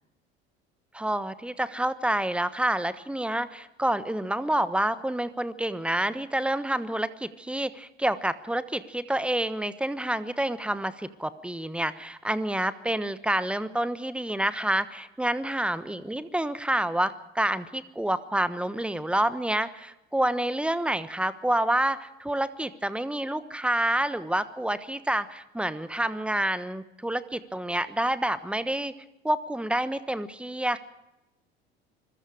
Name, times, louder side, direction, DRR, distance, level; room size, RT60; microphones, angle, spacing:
voice 1, 0.9-28.9 29.2-30.8, right 1 dB, 5° right, 14 dB, 1.2 m, -28 dB
26.0 x 21.0 x 5.0 m, 0.93 s
figure-of-eight pair, 65°, 31 cm